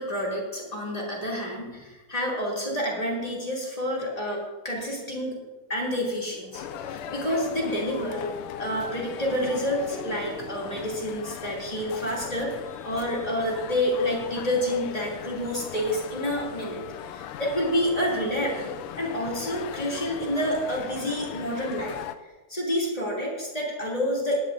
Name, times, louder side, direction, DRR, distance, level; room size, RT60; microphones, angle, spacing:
voice 1, 0.0-5.4 5.7-8.2 8.6-16.8 17.1-22.0 22.2-24.4, equal, 15° left, -3 dB, 2.9 m, -29 dB
Dog, 6.3-12.0, left 4 dB, 55° left, 1.6 m, -42 dB
sound 1, 6.5-22.2, left 10 dB, 90° left, 1.5 m, -39 dB
19.0 x 11.0 x 2.7 m, 1.1 s
omnidirectional pair, 2.4 m